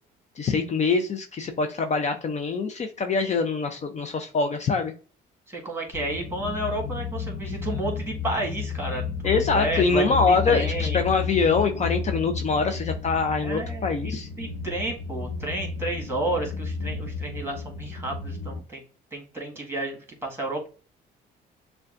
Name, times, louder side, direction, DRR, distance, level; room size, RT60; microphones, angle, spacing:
voice 1, 0.4-4.9 7.4-7.5 9.2-14.3, left 4 dB, 35° left, 6 dB, 0.5 m, -24 dB
voice 2, 5.5-9.0 9.5-11.0 13.3-14.1 14.4-18.8 19.1-20.7, right 1 dB, 10° right, 0 dB, 1.7 m, -31 dB
sound 1, 5.9-18.6, left 6 dB, 70° left, 0.8 m, -32 dB
6.4 x 2.3 x 2.5 m, 0.38 s
supercardioid pair, 80°, 20 cm